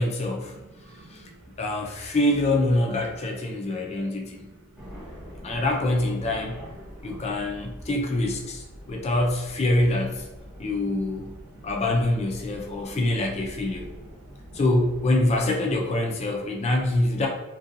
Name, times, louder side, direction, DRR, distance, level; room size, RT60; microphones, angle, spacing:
voice 1, 0.0-0.6 1.1-1.3 1.6-4.5 5.4-6.6 7.0-10.3 10.6-11.3 11.6-13.9 14.5-17.3, left 1 dB, 30° left, 1 dB, 0.4 m, -25 dB
voice 2, 0.5-1.5 3.6-3.8 4.3-5.3 7.0-7.2 8.8-9.0 10.5-10.8 11.6-11.7 12.5-13.0 14.3-14.6, right 2 dB, 60° right, -3 dB, 0.6 m, -51 dB
sound 1, 4.7-15.5, equal, 5° right, 0.7 m, -44 dB
2.5 x 2.2 x 2.5 m, 0.97 s
head